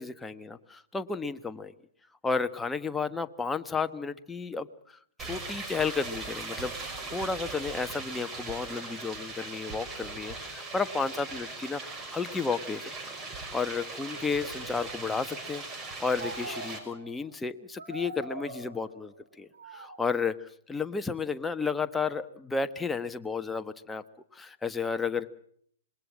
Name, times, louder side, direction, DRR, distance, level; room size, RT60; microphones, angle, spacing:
voice 1, 0.0-1.7 2.2-4.7 5.2-6.7 7.1-12.9 13.5-24.0 24.3-25.3, left 4 dB, 10° left, 9 dB, 1.3 m, -32 dB
sound 1, 5.2-16.8, right 3 dB, 20° right, 5.8 m, -39 dB
sound 2, 12.9-13.1 14.0-15.3 16.2-17.2 17.8-19.1 19.5-20.1, right 3 dB, 65° right, 5.5 m, -44 dB
27.0 x 22.0 x 7.5 m, 0.64 s
figure-of-eight pair, 115°, 0 cm